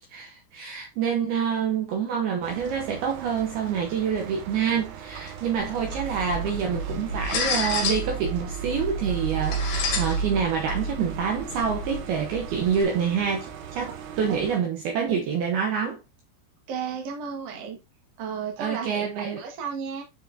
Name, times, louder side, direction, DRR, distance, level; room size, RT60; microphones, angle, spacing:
voice 1, 0.1-16.0 18.6-19.4, right 7 dB, 70° right, 2.5 m, -27 dB
sound 1, 2.4-14.6, right 8 dB, 85° right, 3.8 m, -40 dB
sound 2, 5.6-12.8, equal, 60° left, 3.3 m, -30 dB
voice 2, 16.7-17.8 18.2-20.0, right 6 dB, 50° right, 2.0 m, -33 dB
9.4 x 4.8 x 2.7 m
omnidirectional pair, 5.4 m